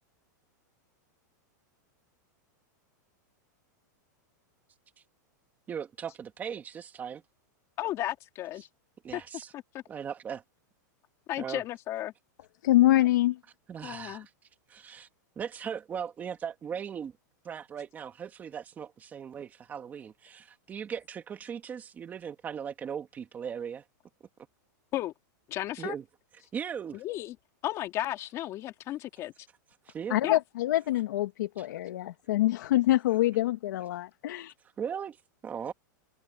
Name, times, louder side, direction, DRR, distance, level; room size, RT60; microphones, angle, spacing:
voice 1, 5.7-7.2 9.0-9.5 9.9-10.4 11.4-11.6 13.7-14.3 14.7-15.1 15.4-17.1 17.4-23.8 25.8-26.0 26.5-27.0 29.9-30.2 31.6-31.7 34.8-35.2 35.4-35.7, right 7 dB, 15° right, 2.2 m, -38 dB
voice 2, 7.8-8.7 9.1-9.2 9.5-9.8 11.3-12.1 13.8-14.3 24.9-25.1 25.5-25.9 26.9-27.4 27.6-29.3 30.2-30.4, left 14 dB, 30° left, 3.0 m, -34 dB
voice 3, 12.6-13.4 30.1-34.5, left 15 dB, 70° left, 1.9 m, -25 dB
supercardioid pair, 165°, 10 cm